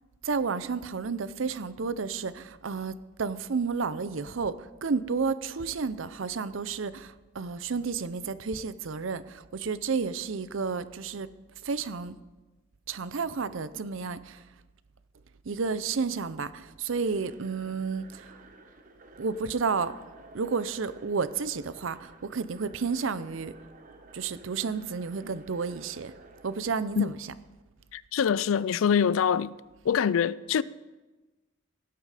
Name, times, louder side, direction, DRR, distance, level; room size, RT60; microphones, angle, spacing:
voice 1, 0.2-11.3 11.6-12.2 12.9-14.4 15.4-18.3 19.2-19.9 20.3-23.5 24.1-26.1 26.4-27.3, right 5 dB, 65° right, 0.6 m, -31 dB
sound 1, 16.9-26.6, right 2 dB, 40° right, 1.2 m, -53 dB
voice 2, 27.9-29.5 29.8-30.6, left 7 dB, 75° left, 0.4 m, -24 dB
17.5 x 8.4 x 4.9 m
head